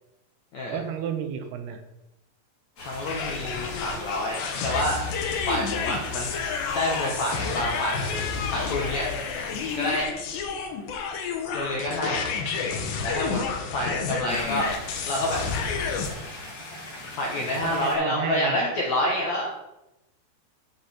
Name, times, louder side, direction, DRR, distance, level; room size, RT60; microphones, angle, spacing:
voice 1, 0.7-1.8 17.5-18.6, right 8 dB, 75° right, 7 dB, 2.7 m, -31 dB
voice 2, 2.8-5.0 5.4-6.4 6.7-8.0 8.5-9.1 9.8-10.1 11.5-12.3 13.0-13.4 13.7-14.7 15.1-15.4 17.2-19.5, left 1 dB, 70° left, -2 dB, 1.7 m, -28 dB
sound 1, 2.8-10.0 14.3-18.0, left 1 dB, 40° left, 4.9 m, -41 dB
sound 2, 3.1-16.1, left 5 dB, 90° left, 3.3 m, -30 dB
13.0 x 5.1 x 4.3 m, 0.92 s
omnidirectional pair, 4.8 m